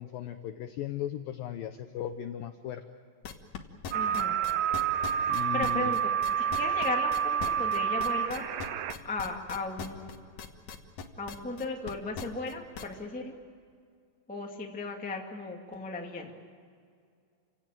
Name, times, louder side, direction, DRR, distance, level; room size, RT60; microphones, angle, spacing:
voice 1, 0.0-2.8 5.3-6.0, left 11 dB, 80° left, 8 dB, 2.0 m, -37 dB
sound 1, 3.2-12.9, left 6 dB, 60° left, 2.0 m, -40 dB
voice 2, 3.9-4.4 5.3-8.5 9.0-10.1 11.2-13.4 14.3-16.3, left 3 dB, 10° left, 1 dB, 0.5 m, -36 dB
sound 2, 3.9-8.9, right 8 dB, 75° right, 2.0 m, -29 dB
29.5 x 17.5 x 9.1 m, 2.2 s
omnidirectional pair, 5.1 m